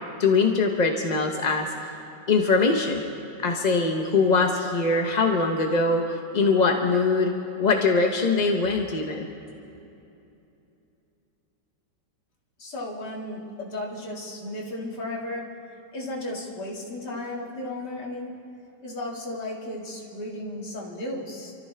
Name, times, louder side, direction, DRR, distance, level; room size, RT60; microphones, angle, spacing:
voice 1, 0.2-1.7 2.3-3.0 3.4-7.3 7.6-9.3, left 4 dB, 40° left, 2 dB, 0.6 m, -22 dB
voice 2, 12.6-15.4 15.9-18.3 18.8-21.5, left 1 dB, 70° left, -3 dB, 2.8 m, -34 dB
28.0 x 13.5 x 3.3 m, 2.8 s
omnidirectional pair, 1.9 m